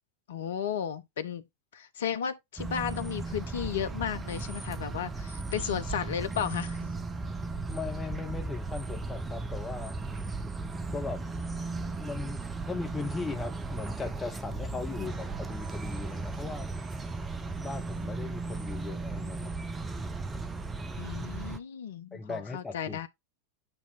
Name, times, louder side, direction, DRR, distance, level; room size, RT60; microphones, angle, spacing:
voice 1, 0.3-1.4 1.7-6.9 15.0-15.1 21.0-23.1, left 8 dB, 60° left, 0.8 m, -34 dB
sound 1, 2.6-21.6, right 3 dB, 15° right, 0.8 m, -36 dB
voice 2, 7.7-9.9 10.9-11.2 12.0-16.7 17.6-19.5 22.1-23.0, left 4 dB, 15° left, 1.5 m, -38 dB
9.0 x 3.0 x 4.1 m
figure-of-eight pair, 90°, 0 cm